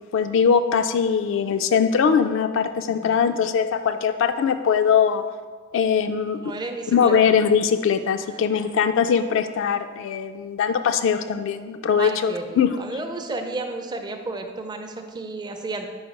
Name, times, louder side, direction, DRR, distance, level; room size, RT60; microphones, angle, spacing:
voice 1, 0.1-5.2 5.7-6.5 6.9-12.8, left 7 dB, 70° left, 8 dB, 0.3 m, -21 dB
voice 2, 2.9-3.2 6.4-7.1 8.3-8.7 12.0-15.9, right 2 dB, 20° right, 4 dB, 0.5 m, -32 dB
4.7 x 4.7 x 5.1 m, 1.5 s
head